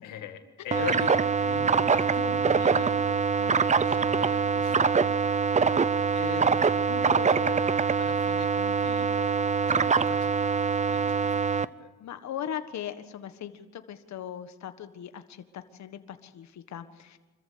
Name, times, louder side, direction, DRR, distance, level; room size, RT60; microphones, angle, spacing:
voice 1, 0.0-5.6 6.1-7.7 8.0-11.9, left 9 dB, 90° left, 7 dB, 2.0 m, -41 dB
sound 1, 0.7-11.7, right 5 dB, 25° right, 0.6 m, -24 dB
voice 2, 12.0-17.2, left 9 dB, 65° left, 9 dB, 1.6 m, -39 dB
26.0 x 14.5 x 8.4 m, 1.3 s
cardioid pair, 90°, 30 cm